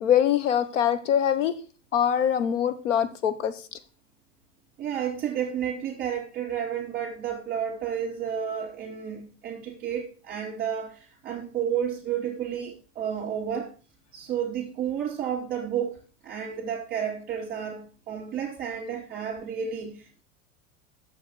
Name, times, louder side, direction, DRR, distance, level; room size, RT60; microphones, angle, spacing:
voice 1, 0.0-1.6 1.9-3.8, left 9 dB, 85° left, 1.1 m, -24 dB
voice 2, 4.8-13.7 14.1-20.2, right 8 dB, 25° right, 2.8 m, -31 dB
7.1 x 5.6 x 5.7 m
supercardioid pair, 135°, 36 cm